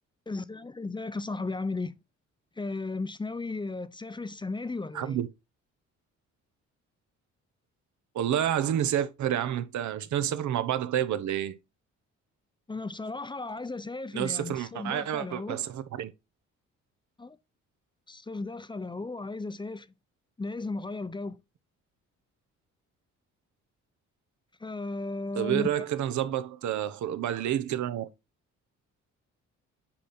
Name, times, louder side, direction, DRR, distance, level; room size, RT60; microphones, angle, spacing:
voice 1, 0.3-1.9 2.6-5.2 12.7-15.6 17.2-17.4 18.1-19.9 20.4-21.4 24.6-25.8, left 3 dB, 15° left, 0.7 m, -35 dB
voice 2, 4.9-5.3 8.1-11.6 14.1-16.1 25.3-28.1, right 10 dB, 70° right, 1.0 m, -29 dB
8.7 x 5.1 x 4.3 m
cardioid pair, 90°, 30 cm